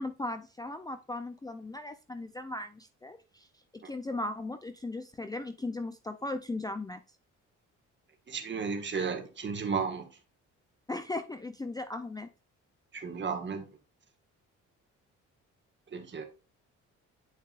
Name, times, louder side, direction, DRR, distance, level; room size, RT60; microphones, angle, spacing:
voice 1, 0.0-3.5 3.7-7.0 10.9-12.3, left 2 dB, 15° left, 0.5 m, -37 dB
voice 2, 8.3-10.1 12.9-13.7 15.9-16.3, right 5 dB, 40° right, 1.7 m, -33 dB
8.8 x 5.2 x 2.5 m
cardioid pair, 90°, 30 cm